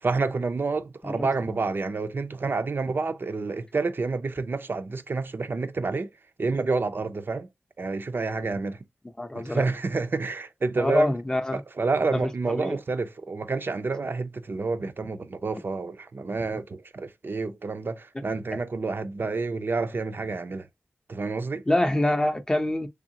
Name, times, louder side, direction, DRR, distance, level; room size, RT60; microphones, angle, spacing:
voice 1, 0.0-6.1 6.4-7.5 7.8-8.8 9.3-11.1 11.5-20.7 21.1-21.6, right 3 dB, 45° right, 0.5 m, -29 dB
voice 2, 9.2-9.6 10.8-11.6 12.1-12.3 12.6-12.8 21.7-22.9, left 1 dB, 15° left, 0.6 m, -25 dB
3.6 x 3.4 x 2.7 m
wide cardioid pair, 105°, 5 cm